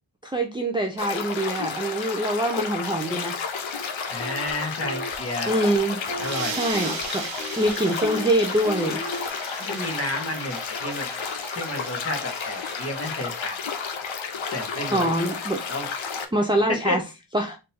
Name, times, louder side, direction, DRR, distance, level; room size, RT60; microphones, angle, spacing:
voice 1, 0.2-3.4 5.5-6.0 6.6-7.3 7.6-9.0 14.9-15.6 16.3-17.0 17.3-17.6, right 1 dB, 10° right, 2 dB, 0.5 m, -24 dB
sound 1, 1.0-16.2, left 5 dB, 90° left, 0.8 m, -32 dB
voice 2, 4.1-5.5 6.2-6.6 9.6-11.1 11.6-12.2 12.4-13.6 14.5-15.1 15.7-15.9 16.8-17.0, left 1 dB, 30° left, 3 dB, 1.2 m, -31 dB
sound 2, 4.2-4.5 4.8-5.2 5.5-5.8 6.1-7.0 7.4-7.7 8.0-8.3 8.6-9.3, left 1 dB, 75° left, 1.2 m, -35 dB
sound 3, 5.9-13.3, right 7 dB, 80° right, 0.7 m, -39 dB
3.8 x 2.6 x 4.1 m, 0.27 s
wide cardioid pair, 110°, 46 cm